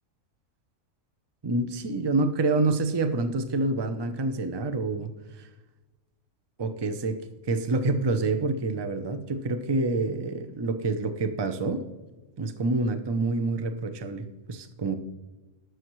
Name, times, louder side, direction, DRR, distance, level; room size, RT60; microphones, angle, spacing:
voice 1, 1.4-5.1 6.6-7.2 7.5-11.9 12.4-14.9, right 3 dB, 30° right, 9 dB, 0.5 m, -27 dB
19.0 x 6.4 x 3.1 m, 1.1 s
omnidirectional pair, 1.4 m